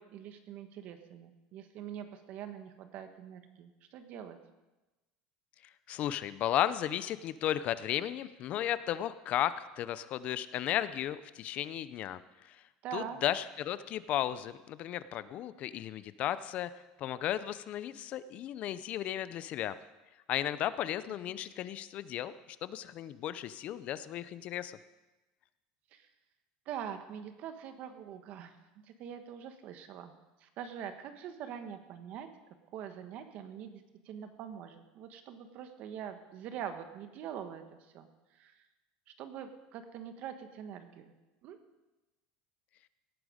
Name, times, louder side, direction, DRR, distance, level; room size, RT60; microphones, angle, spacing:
voice 1, 0.0-4.4 12.8-13.2 25.9-26.1 26.7-28.5 28.8-30.1 30.4-32.3 32.7-37.6 37.9-38.1 38.3-38.6 39.2-41.1 41.4-41.6, right 9 dB, 50° right, 8 dB, 1.3 m, -44 dB
voice 2, 5.9-12.6 12.9-16.7 17.0-19.8 20.3-24.8, left 12 dB, 45° left, 15 dB, 0.6 m, -34 dB
17.5 x 9.2 x 5.1 m, 1.1 s
supercardioid pair, 140°, 3 cm